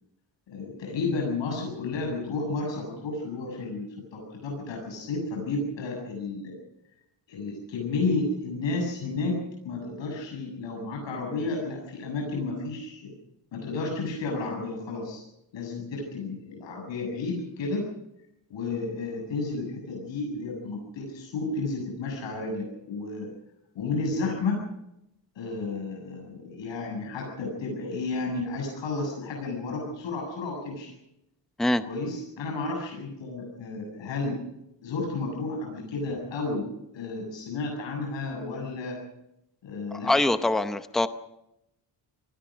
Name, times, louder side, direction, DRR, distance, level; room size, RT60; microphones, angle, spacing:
voice 1, 0.5-6.5 7.3-13.1 13.5-15.2 15.5-17.9 18.5-23.3 23.7-24.6 25.3-30.9 31.9-34.4 34.8-36.7 36.9-39.0 39.6-40.1, left 3 dB, 90° left, 0 dB, 7.7 m, -32 dB
voice 2, 40.0-41.1, left 2 dB, ahead, 10 dB, 0.7 m, -23 dB
28.0 x 19.5 x 5.2 m, 0.84 s
wide cardioid pair, 180°, 43 cm